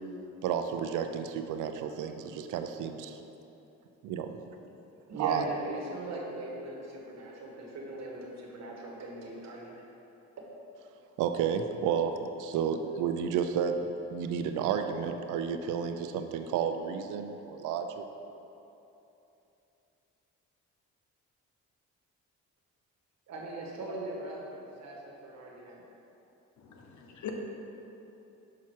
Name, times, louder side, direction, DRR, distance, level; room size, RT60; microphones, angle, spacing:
voice 1, 0.4-3.2 4.0-4.4 5.2-5.5 11.2-12.1 12.4-13.8 14.1-18.0, right 7 dB, 85° right, 7 dB, 0.5 m, -31 dB
voice 2, 5.1-9.8 23.3-25.8, right 2 dB, 60° right, -1 dB, 1.4 m, -40 dB
voice 3, 26.6-27.3, left 10 dB, 75° left, 2 dB, 1.0 m, -42 dB
5.9 x 5.8 x 4.6 m, 2.9 s
cardioid pair, 90°, 30 cm